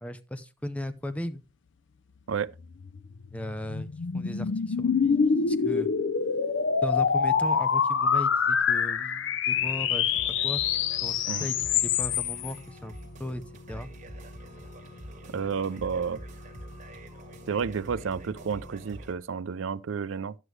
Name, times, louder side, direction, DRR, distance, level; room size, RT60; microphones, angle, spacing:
voice 1, 0.0-1.4 3.3-3.9 4.1-5.2 5.5-5.9 6.8-10.1 10.4-10.6 11.0-12.9 13.2-13.4 13.7-13.9, left 1 dB, 5° left, 0.6 m, -36 dB
sound 1, 2.8-12.5, left 6 dB, 60° left, 0.5 m, -26 dB
sound 2, 9.5-19.1, left 3 dB, 75° left, 1.1 m, -50 dB
sound 3, 10.1-19.1, right 1 dB, 35° right, 1.7 m, -46 dB
voice 2, 15.3-16.2 17.5-20.3, right 6 dB, 70° right, 0.4 m, -31 dB
11.0 x 8.1 x 3.2 m
head